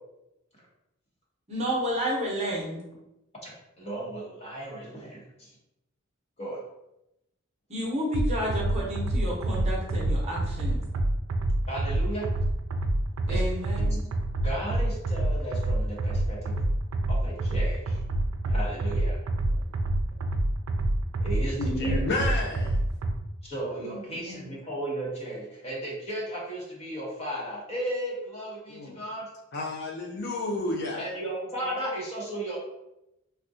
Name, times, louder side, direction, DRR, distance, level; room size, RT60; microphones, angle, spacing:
voice 1, 1.5-2.8 7.7-10.8 13.3-14.0 23.8-24.5, equal, 30° right, 0.8 m, -31 dB
voice 2, 3.4-5.5 6.4-6.6 11.7-12.3 13.3-13.4 13.7-14.0 14.4-16.5 17.1-18.0 18.5-19.2 21.2-22.0 23.4-29.3 31.0-32.6, right 1 dB, 30° left, 1.0 m, -35 dB
sound 1, 8.1-23.1, right 1 dB, 90° right, 0.4 m, -27 dB
voice 3, 21.6-22.8 28.7-29.0 29.5-31.1, left 2 dB, 50° left, 0.4 m, -30 dB
3.5 x 2.2 x 2.6 m
head